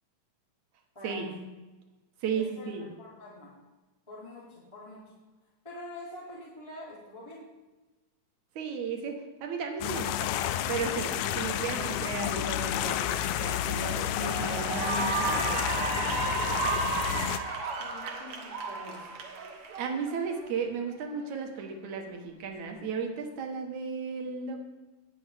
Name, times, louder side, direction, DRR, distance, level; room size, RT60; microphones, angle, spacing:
voice 1, 0.9-1.5 2.3-3.5 4.1-5.1 5.6-7.5 17.8-19.0, left 1 dB, 10° left, -7 dB, 2.5 m, -45 dB
voice 2, 2.2-2.9 8.6-10.3 10.7-15.7 17.5-17.7 18.0-18.1 19.8-24.6, right 5 dB, 75° right, 3 dB, 2.6 m, -35 dB
sound 1, 9.8-17.4, left 11 dB, 80° left, 1.9 m, -31 dB
Cheering / Applause, 13.2-13.5 13.9-20.5, right 4 dB, 55° right, 1.9 m, -33 dB
18.0 x 6.9 x 3.5 m, 1.2 s
omnidirectional pair, 3.4 m